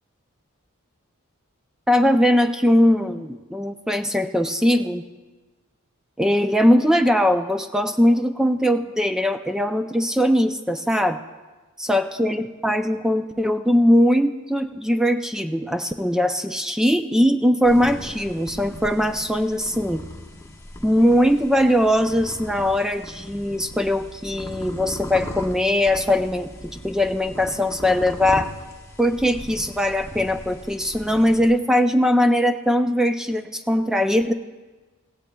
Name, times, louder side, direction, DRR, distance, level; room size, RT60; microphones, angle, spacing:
voice 1, 1.9-5.0 6.2-11.2 11.8-20.0 20.8-28.5 29.0-34.3, equal, 5° right, 8 dB, 0.3 m, -20 dB
sound 1, 17.6-31.5, left 1 dB, 15° left, 1.2 m, -38 dB
16.5 x 16.0 x 2.3 m, 1.2 s
head